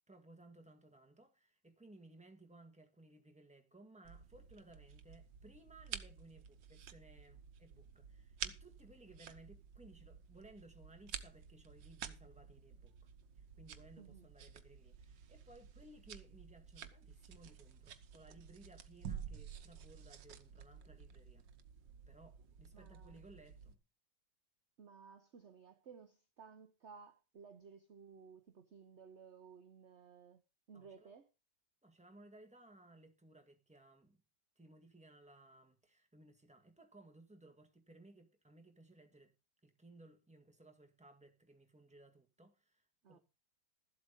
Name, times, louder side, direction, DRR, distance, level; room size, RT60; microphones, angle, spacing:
voice 1, 0.1-12.9 13.6-21.5 22.1-23.8 30.7-31.1 31.8-34.2 34.6-39.3 39.6-43.2, right 2 dB, 5° right, 1.8 m, -61 dB
sound 1, 4.0-23.8, right 8 dB, 70° right, 1.7 m, -51 dB
voice 2, 14.0-14.3 22.7-23.2 24.8-30.4 30.7-31.3 43.0-43.2, right 6 dB, 45° right, 1.1 m, -57 dB
13.5 x 7.9 x 5.2 m
omnidirectional pair, 2.0 m